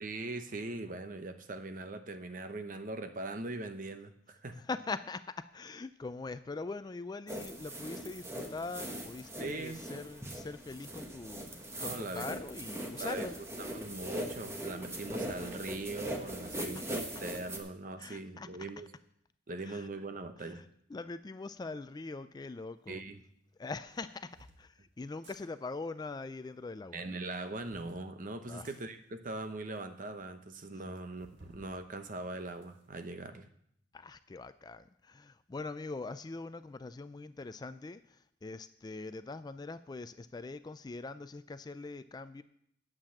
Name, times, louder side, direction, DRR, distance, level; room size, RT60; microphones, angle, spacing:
voice 1, 0.0-4.6 9.4-9.8 11.7-12.3 13.0-13.3 13.6-18.9 19.5-20.6 22.9-23.2 26.9-33.5, right 2 dB, 45° right, 8 dB, 0.9 m, -41 dB
voice 2, 4.5-13.4 16.6-16.7 18.0-18.5 19.6-19.9 20.4-20.6 20.9-23.0 23.6-27.0 28.5-28.7 30.8-31.0 33.9-42.4, left 3 dB, 25° left, 13 dB, 0.3 m, -42 dB
sound 1, 7.3-17.6, right 1 dB, 15° right, 1.1 m, -40 dB
sound 2, 22.9-23.0 23.9-24.6 25.1-25.4 27.1-27.9 28.6-28.8 29.5-29.6 29.8-29.9 30.2-30.3 31.2-31.7 32.1-33.1, right 1 dB, 75° right, 1.9 m, -58 dB
9.0 x 7.6 x 7.2 m, 0.71 s
head